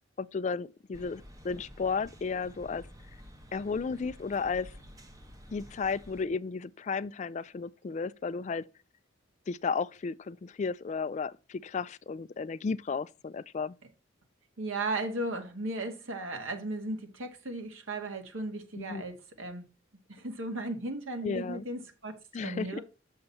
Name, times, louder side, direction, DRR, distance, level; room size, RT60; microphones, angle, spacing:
voice 1, 0.2-2.9 3.5-4.7 5.5-8.7 9.5-13.7 18.7-19.0 21.2-21.6 22.3-22.8, left 5 dB, 35° left, 0.3 m, -33 dB
sound 1, 0.9-6.3, equal, 20° right, 1.1 m, -51 dB
voice 2, 14.6-19.7 20.1-22.2 22.4-22.8, right 2 dB, 85° right, 1.8 m, -36 dB
7.0 x 6.5 x 4.1 m
head